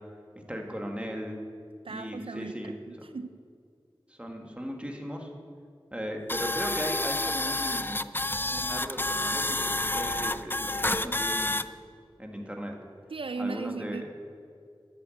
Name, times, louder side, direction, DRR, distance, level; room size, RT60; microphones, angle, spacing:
voice 1, 0.5-1.4 1.9-3.1 4.1-5.3 5.9-8.1 8.5-11.6 12.2-12.8 13.4-14.1, equal, 10° right, 1 dB, 1.8 m, -37 dB
voice 2, 1.8-2.5 2.9-3.4 13.1-14.1, right 4 dB, 70° right, 10 dB, 0.4 m, -36 dB
sound 1, 6.3-11.6, left 2 dB, 20° left, 0.4 m, -29 dB
10.5 x 7.0 x 7.8 m, 2.3 s
wide cardioid pair, 45°, 9 cm